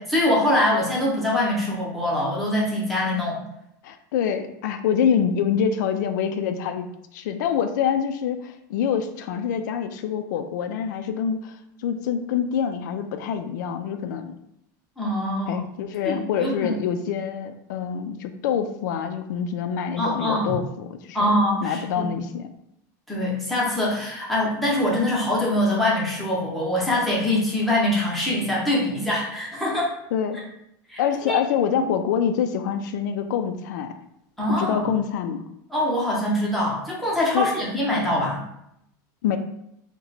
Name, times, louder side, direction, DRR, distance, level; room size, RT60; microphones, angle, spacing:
voice 1, 0.0-3.4 15.0-15.7 16.0-16.7 20.0-20.6 21.1-22.1 23.1-29.9 30.9-31.4 31.8-31.9 34.4-34.9 35.7-38.4, left 1 dB, ahead, -6 dB, 0.7 m, -24 dB
voice 2, 3.8-11.6 11.8-14.3 15.5-21.3 21.6-22.5 30.1-30.4 31.0-33.9 34.5-35.4 37.3-37.5 39.2-39.4, left 8 dB, 75° left, 8 dB, 0.4 m, -26 dB
2.8 x 2.2 x 3.9 m, 0.78 s
supercardioid pair, 165°, 10 cm